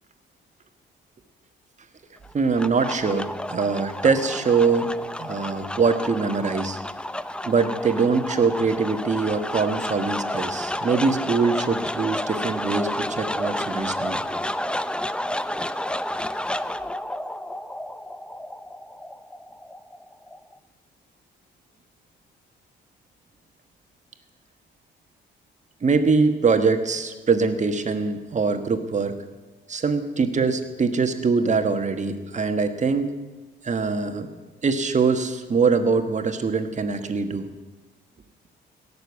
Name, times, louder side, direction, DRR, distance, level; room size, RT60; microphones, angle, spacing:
sound 1, 2.2-20.6, left 1 dB, 5° left, 0.5 m, -31 dB
voice 1, 2.3-4.9 5.2-6.8 7.5-14.2 25.8-29.1 29.7-33.1 33.6-34.3 34.6-37.5, right 4 dB, 35° right, 8 dB, 1.4 m, -23 dB
17.0 x 6.9 x 8.3 m, 1.2 s
cardioid pair, 90°, 20 cm